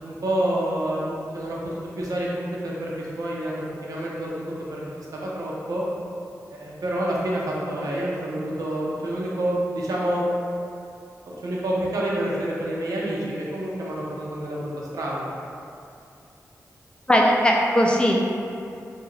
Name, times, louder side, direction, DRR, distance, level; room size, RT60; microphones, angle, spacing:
voice 1, 0.0-4.3 4.7-5.8 6.5-10.2 11.3-15.2, right 1 dB, 80° right, -5 dB, 0.6 m, -28 dB
voice 2, 17.1-18.2, equal, 15° left, -2 dB, 0.4 m, -18 dB
2.7 x 2.4 x 3.1 m, 2.6 s
cardioid pair, 70°, 6 cm